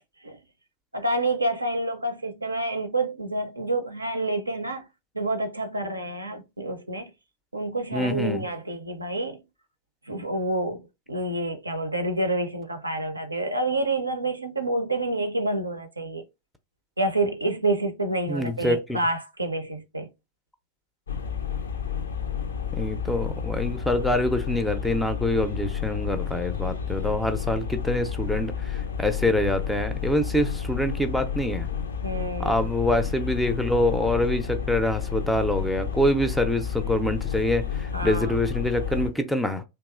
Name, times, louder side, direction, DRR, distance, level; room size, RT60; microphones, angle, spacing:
voice 1, 0.9-4.9 5.1-7.1 7.5-9.4 10.1-16.2 17.0-20.1 32.0-32.6 37.9-38.4, right 2 dB, 80° right, 0.4 m, -28 dB
voice 2, 7.9-8.5 18.3-19.0 22.8-31.7 32.4-39.6, left 1 dB, ahead, 0.4 m, -25 dB
sound 1, 21.1-39.1, left 7 dB, 70° left, 0.4 m, -31 dB
2.9 x 2.3 x 2.3 m
figure-of-eight pair, 90°, 0 cm